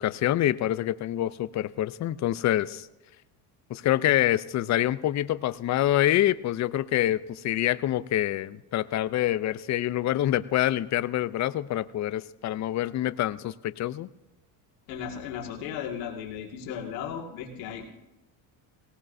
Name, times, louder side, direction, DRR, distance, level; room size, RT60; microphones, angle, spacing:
voice 1, 0.0-2.9 3.7-14.1, left 13 dB, 35° left, 16 dB, 0.5 m, -26 dB
voice 2, 14.9-17.9, left 8 dB, 85° left, 1 dB, 2.1 m, -36 dB
18.0 x 17.5 x 2.7 m, 0.96 s
supercardioid pair, 90°, 49 cm